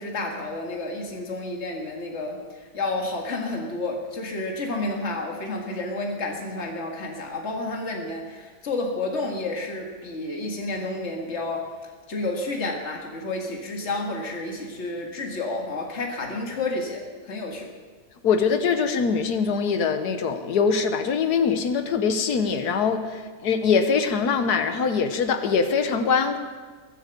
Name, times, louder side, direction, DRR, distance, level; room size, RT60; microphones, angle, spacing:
voice 1, 0.0-11.7 12.1-17.7, left 2 dB, 45° left, 0 dB, 2.2 m, -30 dB
voice 2, 18.2-26.4, left 5 dB, 90° left, 8 dB, 1.6 m, -23 dB
22.5 x 8.3 x 6.8 m, 1.5 s
omnidirectional pair, 1.6 m